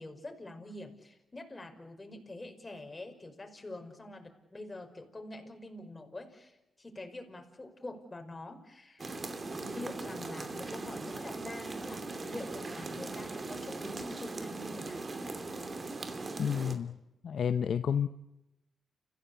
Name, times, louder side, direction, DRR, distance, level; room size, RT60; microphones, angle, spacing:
voice 1, 0.0-9.1 9.5-15.1, left 1 dB, 25° left, 4 dB, 5.6 m, -45 dB
sound 1, 9.0-16.8, right 3 dB, 40° right, 2.8 m, -40 dB
voice 2, 16.4-16.9 17.2-18.1, left 8 dB, 65° left, 11 dB, 0.8 m, -30 dB
29.5 x 15.5 x 8.5 m, 0.92 s
supercardioid pair, 50°, 0 cm